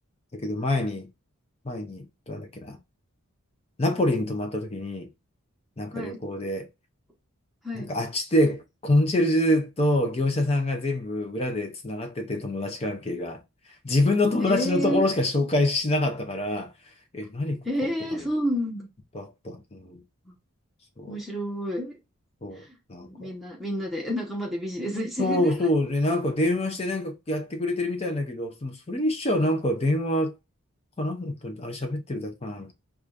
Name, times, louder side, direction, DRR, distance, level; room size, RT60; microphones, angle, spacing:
voice 1, 0.3-1.1 1.6-2.8 3.8-5.1 5.8-6.7 7.7-13.4 13.8-16.7 17.1-17.6 19.1-20.0 21.0-21.1 22.4-22.6 22.9-23.3 25.2-30.3 31.0-32.7, left 1 dB, 25° left, 0.6 m, -26 dB
voice 2, 14.4-15.0 17.6-18.9 20.3-20.4 21.1-22.0 22.5-25.7, equal, ahead, 0.9 m, -30 dB
4.8 x 2.4 x 2.5 m
head